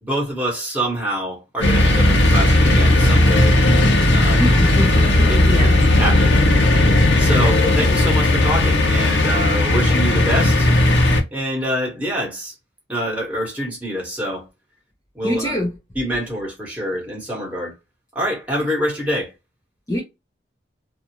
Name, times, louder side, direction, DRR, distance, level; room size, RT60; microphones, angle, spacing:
voice 1, 0.0-3.6 4.1-4.5 5.3-6.7 7.2-10.7 11.3-12.5 12.9-14.5 15.1-15.6 15.9-17.7 18.1-19.3, equal, 10° right, 1.3 m, -25 dB
sound 1, 1.6-11.2, left 1 dB, 85° left, 1.0 m, -15 dB
voice 2, 4.4-5.7 7.4-7.5 15.2-15.7 19.9-20.0, equal, 20° left, 0.6 m, -24 dB
2.7 x 2.3 x 2.9 m
head